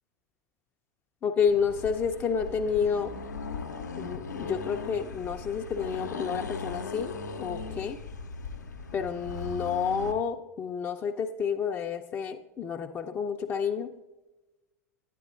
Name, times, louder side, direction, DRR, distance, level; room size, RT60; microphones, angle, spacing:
voice 1, 1.2-3.1 4.0-7.1 7.4-8.0 8.9-13.9, left 6 dB, 20° left, 4 dB, 0.4 m, -30 dB
Accelerating revving vroom, 1.5-10.2, left 3 dB, 80° left, 0.6 m, -38 dB
10.5 x 9.1 x 2.4 m, 1.1 s
figure-of-eight pair, 90°, 9 cm